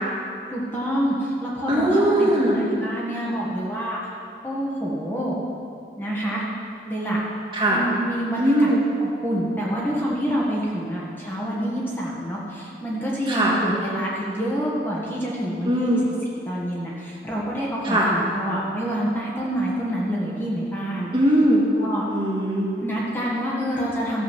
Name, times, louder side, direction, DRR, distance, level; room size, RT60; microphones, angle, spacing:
voice 1, 0.5-4.0 4.4-5.4 6.0-6.4 6.8-7.2 7.7-8.7 9.0-16.0 16.5-21.1 21.8-22.0 22.8-24.2, equal, 10° left, -6 dB, 1.6 m, -27 dB
voice 2, 1.7-2.6 7.5-7.8 8.4-8.8 13.3-13.5 15.7-16.0 17.8-18.1 21.1-21.6 22.1-22.7, right 1 dB, 30° right, -4 dB, 1.9 m, -20 dB
13.5 x 6.3 x 7.4 m, 2.4 s
head